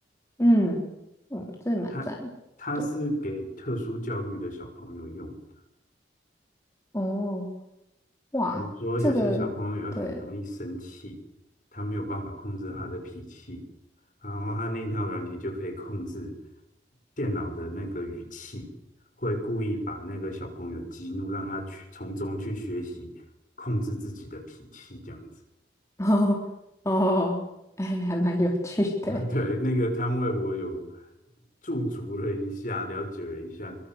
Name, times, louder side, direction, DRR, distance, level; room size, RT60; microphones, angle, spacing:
voice 1, 0.4-0.9 1.3-2.3 6.9-7.5 8.3-8.7 9.0-9.5 10.0-10.2 26.0-26.4 26.8-27.4 27.8-29.2, equal, 15° left, 0 dB, 3.6 m, -25 dB
voice 2, 2.6-5.4 8.6-11.2 11.7-13.6 14.2-16.3 17.2-18.7 19.2-23.1 23.6-25.3 29.1-31.0 31.6-33.8, equal, 45° left, 3 dB, 6.7 m, -32 dB
25.5 x 24.5 x 8.1 m, 0.87 s
head